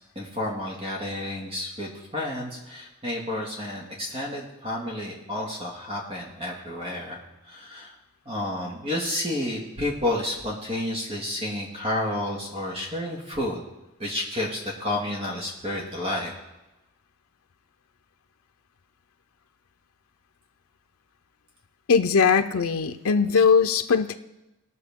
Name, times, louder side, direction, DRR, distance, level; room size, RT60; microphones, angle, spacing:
voice 1, 0.2-7.2 7.5-7.9 8.3-13.6 14.0-16.3, left 1 dB, 30° right, -3 dB, 2.0 m, -30 dB
voice 2, 21.9-24.1, left 5 dB, 90° left, 8 dB, 0.6 m, -20 dB
19.5 x 6.6 x 3.6 m, 0.99 s
head